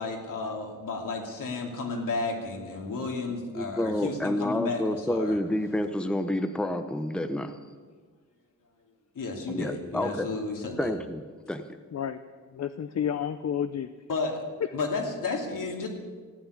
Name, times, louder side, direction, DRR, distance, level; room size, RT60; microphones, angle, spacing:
voice 1, 0.0-5.4 9.1-10.9 14.1-14.4 14.7-15.9, left 3 dB, 80° left, 1 dB, 2.7 m, -32 dB
voice 2, 3.5-7.5 9.5-10.3 10.8-11.6, left 1 dB, 5° left, 8 dB, 0.7 m, -29 dB
voice 3, 12.5-13.9, left 8 dB, 55° left, 10 dB, 0.6 m, -30 dB
15.0 x 8.8 x 9.8 m, 1.5 s
wide cardioid pair, 155°, 32 cm